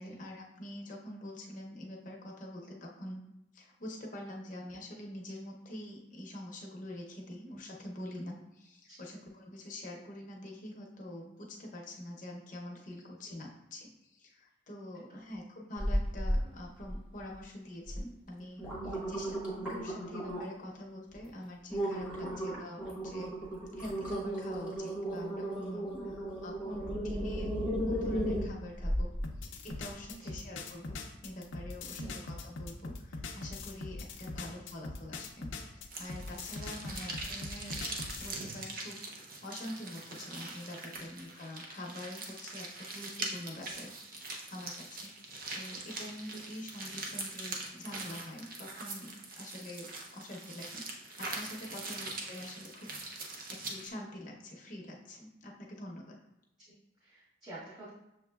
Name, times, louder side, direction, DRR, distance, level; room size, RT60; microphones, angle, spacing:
voice 1, 0.0-3.2 3.5-23.3 23.7-27.5 27.8-29.1 29.4-37.8 38.2-45.1 45.5-50.8 51.2-56.2, left 1 dB, 45° left, -1 dB, 0.7 m, -45 dB
sound 1, 15.8-16.4 16.8-17.3 17.9-18.0 18.4-20.6 21.1-21.3 21.7-29.2 29.7-29.8, equal, 5° right, 1.0 m, -34 dB
sound 2, 29.2-38.3, left 3 dB, 80° left, 0.5 m, -42 dB
sound 3, 35.9-53.9, right 2 dB, 50° right, 0.6 m, -42 dB
voice 2, 57.0-57.9, right 2 dB, 25° right, -11 dB, 1.3 m, -50 dB
6.7 x 3.0 x 2.3 m, 0.87 s
head